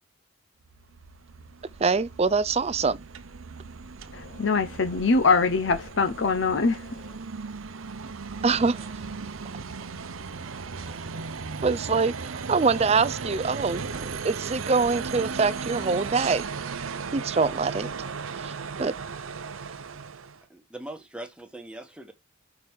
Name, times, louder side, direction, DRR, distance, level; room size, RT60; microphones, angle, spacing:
sound 1, 0.6-20.4, right 5 dB, 80° right, 0.7 m, -36 dB
voice 1, 1.8-3.0 8.4-8.9 10.9-11.0 11.3-16.5 17.1-17.9 18.4-18.9, right 4 dB, 30° right, 0.4 m, -25 dB
voice 2, 4.1-7.2, left 4 dB, 60° left, 0.7 m, -23 dB
voice 3, 20.5-22.1, right 1 dB, 5° right, 1.2 m, -41 dB
6.0 x 4.9 x 3.5 m
head